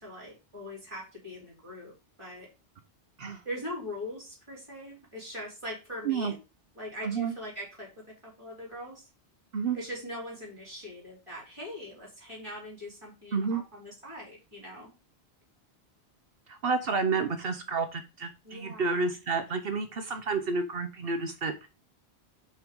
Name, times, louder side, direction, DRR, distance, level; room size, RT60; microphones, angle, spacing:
voice 1, 0.0-2.5 3.4-6.4 6.7-7.9 8.2-9.0 9.7-14.9 18.4-19.1, left 1 dB, 30° right, -3 dB, 4.1 m, -41 dB
voice 2, 7.0-7.3 9.5-9.8 13.3-13.6 16.5-21.7, right 4 dB, 65° right, 8 dB, 1.0 m, -30 dB
5.9 x 5.6 x 5.3 m, 0.29 s
omnidirectional pair, 1.1 m